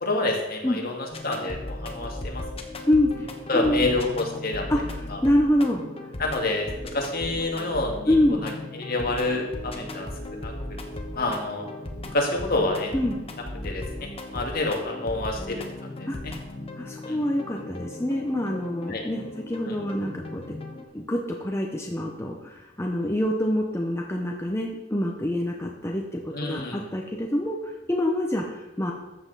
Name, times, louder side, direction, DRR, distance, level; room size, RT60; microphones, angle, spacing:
voice 1, 0.0-1.0 1.2-2.4 3.5-4.7 5.1-5.2 6.2-8.1 8.4-10.1 10.4-10.5 11.1-11.7 12.1-12.9 13.6-15.7 16.0-16.1 17.1-17.2 18.9-19.0 19.7-19.8 26.3-26.9, left 2 dB, 50° left, 1 dB, 1.9 m, -28 dB
sound 1, 1.1-20.8, left 1 dB, 30° left, 1.1 m, -37 dB
voice 2, 3.5-3.8 4.7-5.8 8.1-8.4 12.9-13.2 16.1-16.2 16.8-20.4 20.9-28.9, left 1 dB, 15° left, 0 dB, 0.9 m, -26 dB
13.5 x 7.8 x 4.0 m, 1.0 s
head